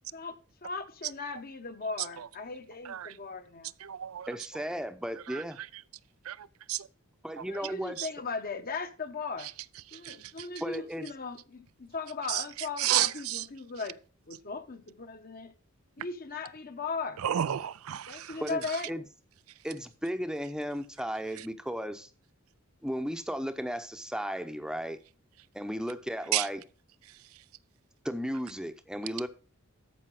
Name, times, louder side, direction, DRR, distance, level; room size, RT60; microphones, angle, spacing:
voice 1, 0.6-3.7 7.5-9.5 9.9-14.0 14.3-15.5 16.0-17.2 18.1-19.1, left 4 dB, 45° left, 1.0 m, -38 dB
voice 2, 2.8-3.2 3.8-4.6 5.3-5.8 6.3-6.4 6.7-6.9 7.4-8.1 9.4-9.5 9.9-10.5 12.3-13.5 17.2-18.4 18.7-18.8 21.4-21.5 26.3-26.5 27.1-27.4, right 12 dB, 80° right, 0.4 m, -33 dB
voice 3, 4.3-5.6 7.2-8.0 10.6-11.1 18.4-18.6 18.9-19.0 19.6-22.1 22.8-25.0 25.5-26.6 28.0-29.3, equal, 5° right, 0.8 m, -35 dB
13.5 x 5.1 x 4.9 m
head